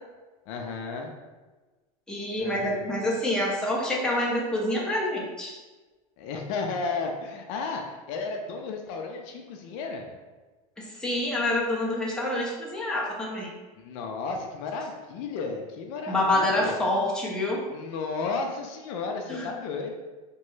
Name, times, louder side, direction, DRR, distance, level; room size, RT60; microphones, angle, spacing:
voice 1, 0.5-1.1 2.4-2.9 6.2-10.1 13.7-16.8 17.7-19.9, left 4 dB, 60° left, 3 dB, 0.4 m, -33 dB
voice 2, 2.1-5.6 10.8-13.5 16.1-17.6 19.3-19.5, left 1 dB, 5° left, -3 dB, 0.6 m, -27 dB
2.9 x 2.2 x 3.1 m, 1.3 s
supercardioid pair, 120°, 19 cm